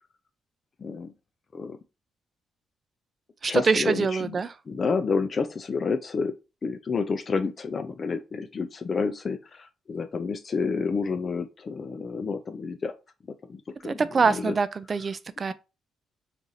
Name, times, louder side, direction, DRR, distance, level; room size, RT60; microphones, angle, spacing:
voice 1, 0.8-1.1 1.5-1.8 3.5-4.4 4.7-6.3 6.6-12.9 13.5-14.5, left 5 dB, 40° left, 0.4 m, -29 dB
voice 2, 3.4-4.5 13.9-15.5, right 5 dB, 40° right, 0.3 m, -24 dB
4.7 x 2.5 x 2.7 m
cardioid pair, 90°, 0 cm